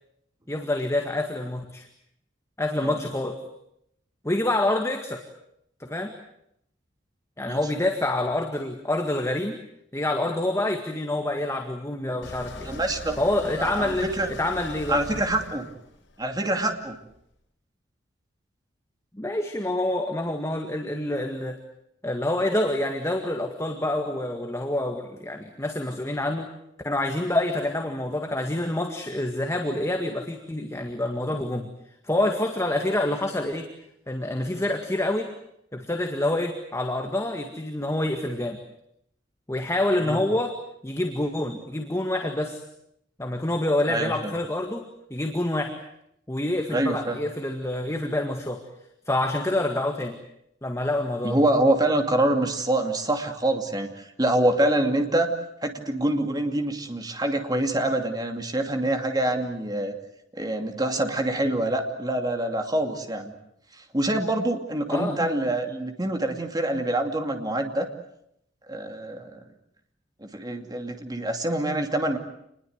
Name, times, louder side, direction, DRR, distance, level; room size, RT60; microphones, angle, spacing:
voice 1, 0.5-1.9 2.6-3.4 4.2-5.2 5.8-6.1 7.4-9.6 9.9-12.7 13.2-15.0 19.1-21.6 22.0-26.5 26.8-31.7 32.0-33.7 34.1-35.3 35.7-38.6 39.5-42.6 43.2-45.7 46.3-48.6 49.1-50.2 50.6-51.4 64.9-65.2, left 1 dB, 15° left, 4 dB, 1.9 m, -27 dB
sound 1, 12.2-17.2, left 2 dB, 75° left, 5.2 m, -41 dB
voice 2, 12.6-13.2 13.6-14.3 14.9-15.7 16.2-17.0 40.0-40.2 43.9-44.4 46.7-47.2 51.2-55.3 55.6-59.9 60.3-63.3 63.9-67.9 68.7-69.4 70.2-72.2, right 1 dB, 20° right, 5 dB, 2.6 m, -25 dB
27.5 x 21.0 x 8.1 m, 0.76 s
head